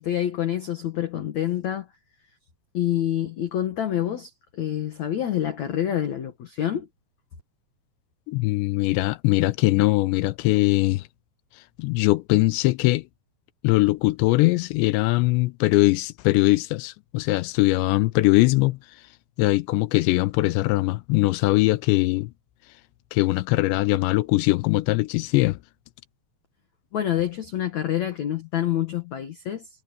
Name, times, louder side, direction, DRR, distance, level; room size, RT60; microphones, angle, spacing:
voice 1, 0.0-1.9 2.7-6.9 26.9-29.7, left 11 dB, 60° left, 2.0 m, -27 dB
voice 2, 8.3-11.0 11.8-13.0 13.6-18.8 19.4-22.3 23.1-25.6, left 20 dB, 85° left, 2.8 m, -21 dB
omnidirectional pair, 5.2 m